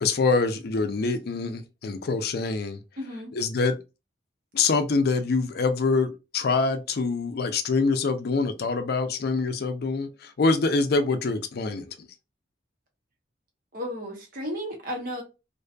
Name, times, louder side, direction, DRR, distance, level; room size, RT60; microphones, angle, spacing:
voice 1, 0.0-2.8 3.3-3.8 4.5-12.1, left 4 dB, 60° left, 0.4 m, -25 dB
voice 2, 3.0-3.3 13.7-15.2, equal, 50° right, 0.8 m, -33 dB
2.6 x 2.2 x 2.5 m
head